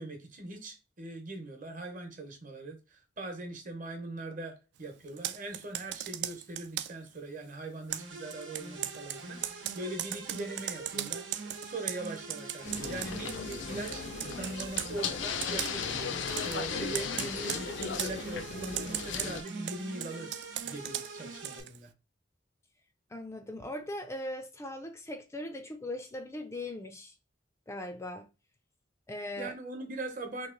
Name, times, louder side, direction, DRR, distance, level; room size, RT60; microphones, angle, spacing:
voice 1, 0.0-20.4 20.6-21.9 29.4-30.5, right 2 dB, 45° right, 1.0 m, -41 dB
Computer keyboard, 5.1-7.1 7.9-13.6 13.9-14.9 15.4-15.9 16.2-16.6 16.9-18.2 18.6-21.8, right 12 dB, 65° right, 0.3 m, -38 dB
sound 1, 7.9-21.6, right 3 dB, 90° right, 1.0 m, -44 dB
sound 2, 12.6-19.4, left 6 dB, 70° left, 0.5 m, -36 dB
voice 2, 23.1-27.1 27.7-28.3 29.1-29.5, left 1 dB, 15° left, 0.3 m, -39 dB
3.0 x 2.8 x 3.7 m
head